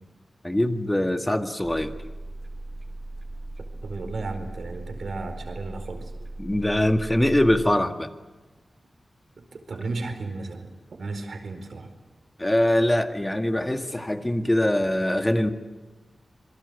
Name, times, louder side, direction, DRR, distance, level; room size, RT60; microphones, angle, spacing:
voice 1, 0.4-1.9 6.4-8.1 12.4-15.5, left 1 dB, 15° left, 6 dB, 1.9 m, -23 dB
sound 1, 1.6-7.6, right 2 dB, 35° right, 3.9 m, -38 dB
voice 2, 3.8-6.1 9.5-10.7 11.0-11.9, right 3 dB, 70° right, 7 dB, 4.6 m, -34 dB
26.5 x 22.0 x 8.3 m, 1.2 s
wide cardioid pair, 85°, 0 cm